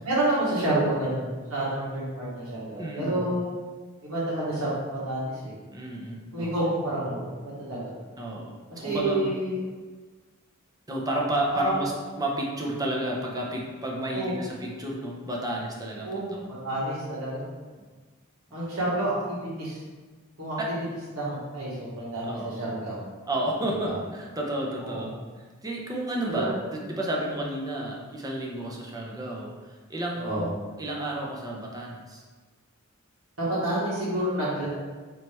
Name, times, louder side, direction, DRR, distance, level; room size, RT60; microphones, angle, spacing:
voice 1, 0.0-3.5 4.0-5.5 6.3-7.3 7.6-7.9 8.8-9.6 11.5-11.8 14.1-14.4 16.0-16.3 16.6-17.4 18.5-19.8 20.4-20.6 21.1-23.0 23.8-23.9 24.8-25.0 26.3-26.5 30.2-30.5 33.4-34.7, right 1 dB, 85° right, -8 dB, 1.4 m, -29 dB
voice 2, 2.8-3.3 5.7-6.5 8.2-9.3 10.9-11.9 12.2-16.5 20.6-20.7 22.2-22.6 23.3-25.1 25.6-30.5 30.8-32.2, right 1 dB, 20° right, -2 dB, 0.6 m, -31 dB
3.3 x 3.0 x 4.3 m, 1.4 s
head